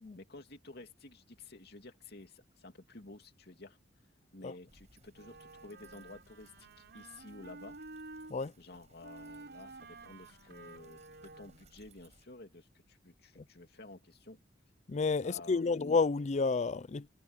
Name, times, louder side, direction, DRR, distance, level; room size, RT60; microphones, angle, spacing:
voice 1, 0.2-3.8 4.3-6.7 6.9-7.8 8.6-14.4 15.2-15.8, left 2 dB, 55° left, 2.7 m, -52 dB
sound 1, 4.7-12.2, right 3 dB, 35° right, 6.3 m, -65 dB
Wind instrument woodwind instrument, 5.1-8.4 9.0-11.8, right 3 dB, 60° right, 5.3 m, -51 dB
voice 2, 14.9-17.1, left 4 dB, 35° left, 0.4 m, -30 dB
head